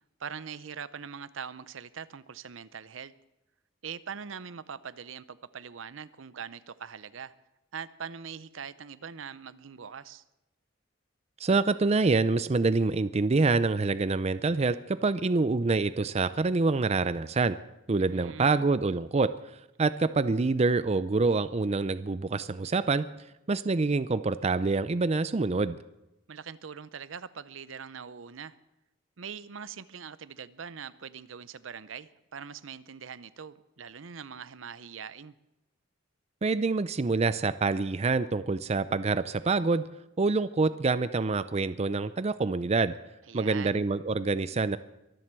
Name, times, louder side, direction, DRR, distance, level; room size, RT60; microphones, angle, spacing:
voice 1, 0.2-3.1 3.8-7.3 7.7-10.2 18.0-18.7 26.3-28.6 29.2-35.3 43.3-43.8, right 7 dB, 80° right, 16 dB, 0.7 m, -42 dB
voice 2, 11.4-17.6 17.9-19.3 19.8-23.0 23.5-25.8 36.4-39.8 40.2-42.9 43.3-44.8, right 3 dB, 35° right, 14 dB, 0.5 m, -26 dB
23.5 x 7.8 x 7.5 m, 0.93 s
head